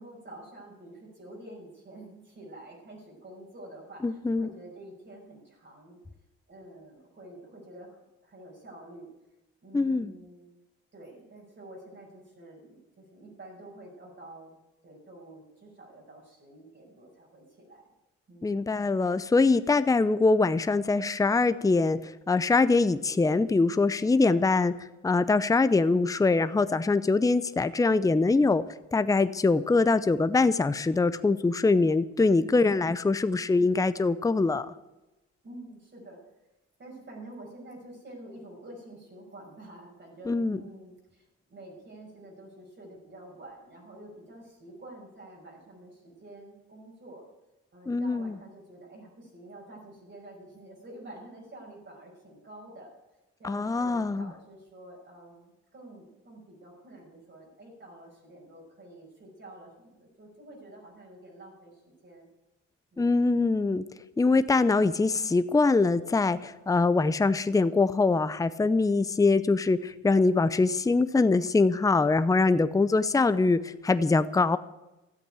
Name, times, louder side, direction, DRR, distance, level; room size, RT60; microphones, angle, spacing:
voice 1, 0.0-6.0 6.5-9.1 9.6-10.6 10.9-17.9 18.3-18.5 32.2-32.7 33.3-33.4 35.4-36.2 36.8-47.2 47.7-52.9 53.4-62.3 62.9-63.4 72.8-73.1, right 1 dB, 40° right, -2 dB, 6.0 m, -48 dB
voice 2, 4.0-4.5 9.7-10.1 18.4-24.7 25.0-28.6 28.9-34.7 40.3-40.6 47.9-48.3 53.4-54.3 63.0-63.8 64.2-74.6, left 3 dB, 10° left, 13 dB, 0.7 m, -23 dB
13.0 x 8.5 x 9.0 m, 0.99 s
cardioid pair, 80°, 29 cm